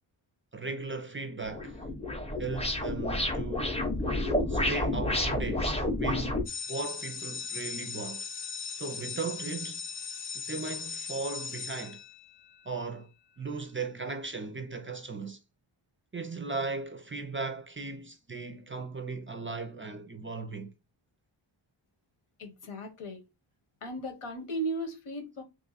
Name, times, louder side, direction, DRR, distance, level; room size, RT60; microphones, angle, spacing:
voice 1, 0.5-1.8 2.4-3.8 4.5-6.4 6.7-8.3 8.7-9.8 10.5-12.0 12.7-13.1 13.4-15.4 16.1-20.7, right 3 dB, 25° right, 0.4 m, -37 dB
sound 1, 1.5-6.4, left 1 dB, 15° left, 0.6 m, -30 dB
sound 2, 6.5-12.6, left 6 dB, 55° left, 0.6 m, -39 dB
voice 2, 22.4-23.2 23.8-25.4, right 1 dB, 80° left, 1.2 m, -36 dB
2.9 x 2.4 x 3.9 m
wide cardioid pair, 105°, 49 cm